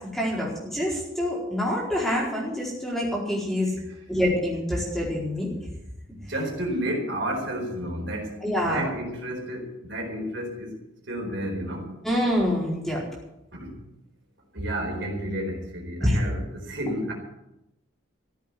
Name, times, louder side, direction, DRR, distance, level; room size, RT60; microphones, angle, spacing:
voice 1, 0.1-3.8 4.1-5.5 8.4-8.9 12.0-13.0 16.0-16.2, equal, ahead, -5 dB, 4.5 m, -26 dB
voice 2, 6.1-10.7 11.1-12.0 13.5-13.7 14.5-17.1, right 1 dB, 60° right, 0 dB, 4.3 m, -31 dB
14.5 x 8.0 x 9.7 m, 0.90 s
head